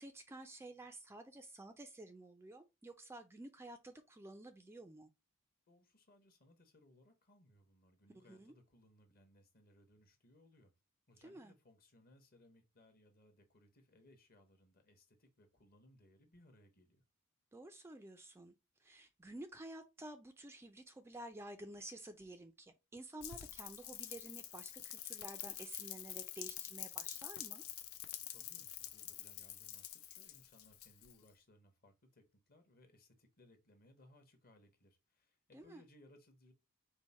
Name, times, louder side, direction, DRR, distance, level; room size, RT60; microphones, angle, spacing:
voice 1, 0.0-5.1 8.3-8.5 11.2-11.5 17.5-18.5 18.8-27.6 35.5-35.8, right 1 dB, 10° right, 0.3 m, -52 dB
voice 2, 5.7-10.7 11.1-17.0 28.3-36.5, left 1 dB, 45° left, 0.9 m, -66 dB
Rain, 23.2-31.3, left 12 dB, 70° left, 0.5 m, -47 dB
4.5 x 2.1 x 4.1 m
head